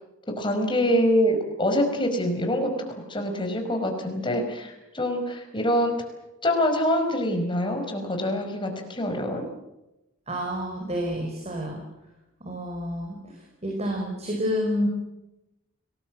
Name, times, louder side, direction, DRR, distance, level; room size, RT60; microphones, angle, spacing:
voice 1, 0.4-2.7 3.1-5.9 6.4-9.4, equal, 25° left, 4 dB, 5.2 m, -25 dB
voice 2, 10.3-11.8 12.4-14.9, equal, 30° right, 1 dB, 5.0 m, -29 dB
30.0 x 20.0 x 7.6 m, 0.94 s
head